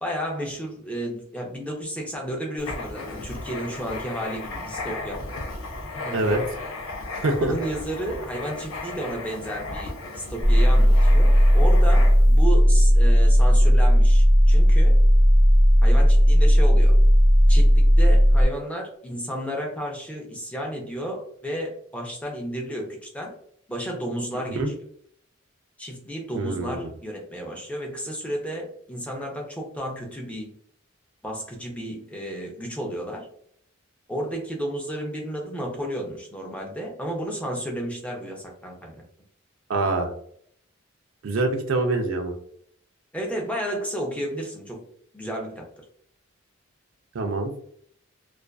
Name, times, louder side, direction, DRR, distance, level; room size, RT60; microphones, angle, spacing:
voice 1, 0.0-5.2 6.0-6.4 7.4-15.0 15.8-16.9 17.5-23.3 23.7-24.6 25.8-30.5 31.2-33.3 34.1-39.0 43.1-44.8 45.1-45.7, equal, 5° left, 0 dB, 0.5 m, -32 dB
Writing, 2.6-12.4, left 2 dB, 80° left, 0.5 m, -35 dB
voice 2, 7.2-7.5 24.5-24.7 26.3-26.8 39.7-40.1 41.2-42.3 47.1-47.5, right 2 dB, 70° right, 4 dB, 0.4 m, -24 dB
sound 1, 10.4-18.5, equal, 45° left, 0.7 m, -15 dB
2.4 x 2.3 x 2.2 m, 0.65 s
head